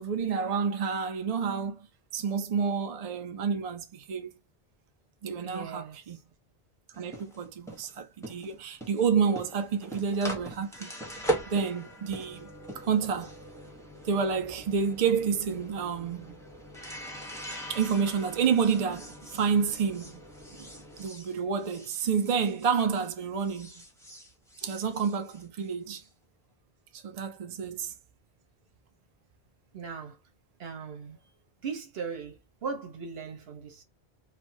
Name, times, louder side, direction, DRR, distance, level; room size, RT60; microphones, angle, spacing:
voice 1, 0.0-1.9 2.1-4.3 5.2-6.2 7.0-10.9 11.5-13.3 14.0-16.4 17.7-20.2 20.5-20.7 21.0-23.8 24.6-26.0 27.0-27.9, right 6 dB, 45° right, 0.6 m, -29 dB
voice 2, 5.4-6.0 29.7-30.2 30.6-31.2 31.6-33.8, right 5 dB, 75° right, 1.1 m, -38 dB
sound 1, 6.9-23.1 23.4-26.0, right 1 dB, 5° left, 0.8 m, -41 dB
3.3 x 2.2 x 2.6 m
omnidirectional pair, 1.0 m